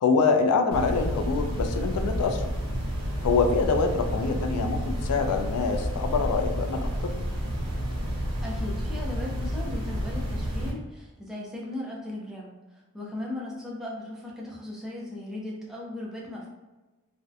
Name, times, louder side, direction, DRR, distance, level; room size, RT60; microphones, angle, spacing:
voice 1, 0.0-2.5 3.2-7.2, left 4 dB, 90° left, 6 dB, 0.3 m, -25 dB
sound 1, 0.7-10.7, equal, 85° right, 0.8 m, -30 dB
voice 2, 8.4-16.5, left 1 dB, ahead, -4 dB, 0.3 m, -37 dB
2.5 x 2.1 x 2.4 m, 1.2 s
head